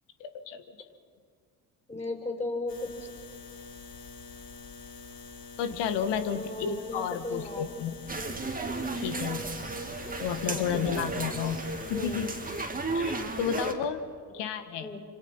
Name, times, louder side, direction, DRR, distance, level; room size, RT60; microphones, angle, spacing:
voice 1, 0.2-0.6 5.6-8.0 9.0-9.4 10.2-11.6 11.9-12.3 12.9-14.1 14.3-15.0, left 8 dB, 70° left, 10 dB, 1.7 m, -32 dB
voice 2, 1.9-3.1 6.1-7.7 10.5-10.6 11.9-12.2 14.8-15.0, left 2 dB, 15° left, 3 dB, 5.4 m, -36 dB
sound 1, 2.7-12.6, left 5 dB, 50° left, 2.4 m, -46 dB
sound 2, 8.1-13.7, right 3 dB, 20° right, 2.2 m, -34 dB
26.5 x 25.5 x 5.6 m, 2.1 s
hypercardioid pair, 65°, 44 cm